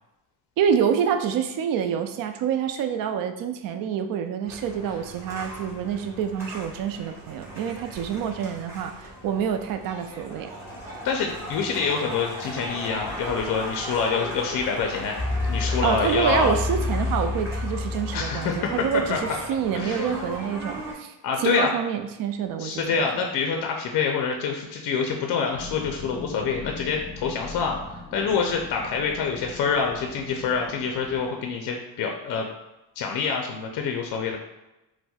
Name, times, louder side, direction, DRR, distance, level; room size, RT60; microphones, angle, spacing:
voice 1, 0.6-10.5 15.8-23.1, right 8 dB, 55° right, 7 dB, 0.4 m, -27 dB
sound 1, 4.5-20.9, left 1 dB, 5° right, 1.1 m, -33 dB
voice 2, 11.0-15.1 15.5-16.5 18.1-18.7 19.1-19.2 19.7-20.0 21.2-21.7 22.6-32.5 33.0-34.4, left 5 dB, 50° left, 2 dB, 0.5 m, -26 dB
sound 2, 25.5-31.3, left 3 dB, 25° left, 0.8 m, -41 dB
4.1 x 2.1 x 2.3 m, 0.98 s
cardioid pair, 95°, 42 cm